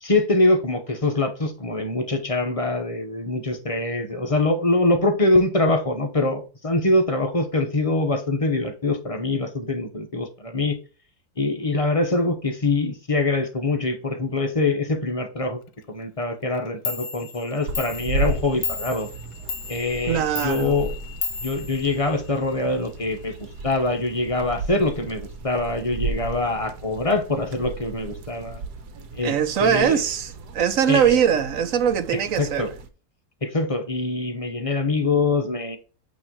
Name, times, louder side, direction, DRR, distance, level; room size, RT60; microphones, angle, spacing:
voice 1, 0.0-10.8 11.4-15.6 15.9-19.1 19.7-20.9 21.4-23.3 23.6-28.6 29.1-29.3 29.6-30.0 30.9-31.1 32.4-32.7 33.4-35.8, left 2 dB, 30° left, 0.7 m, -24 dB
Clock, 16.5-16.6 16.9-22.5, left 6 dB, 75° left, 1.2 m, -34 dB
sound 1, 17.7-32.9, right 2 dB, 85° right, 1.5 m, -34 dB
voice 2, 20.1-20.8 29.2-32.7, right 8 dB, 65° right, 1.1 m, -21 dB
8.6 x 3.1 x 4.6 m
omnidirectional pair, 1.7 m